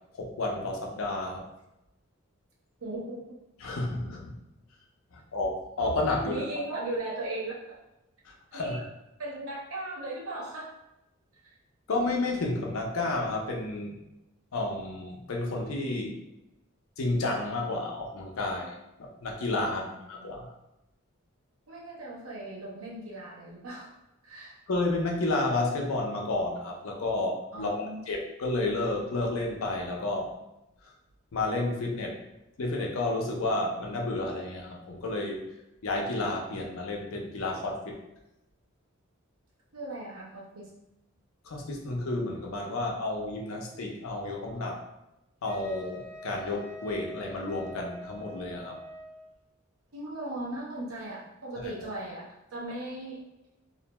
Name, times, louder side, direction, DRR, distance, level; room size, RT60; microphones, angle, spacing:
voice 1, 0.1-1.4 3.6-4.3 5.1-6.4 8.3-8.8 11.9-14.0 14.5-16.2 17.0-18.7 19.0-20.5 24.7-30.3 31.3-32.2 32.6-35.4 35.8-38.0 41.4-44.8 45.4-48.8 51.6-51.7, left 2 dB, 75° left, 0 dB, 0.5 m, -31 dB
voice 2, 2.8-3.2 6.2-7.8 8.5-8.8 9.2-10.7 11.4-11.6 19.6-20.3 21.7-23.9 24.2-24.6 27.5-28.0 39.7-40.7 49.9-53.3, right 2 dB, 85° right, -4 dB, 0.8 m, -38 dB
Wind instrument woodwind instrument, 45.4-49.3, equal, 30° right, 0.6 m, -44 dB
2.5 x 2.1 x 2.9 m, 0.91 s
head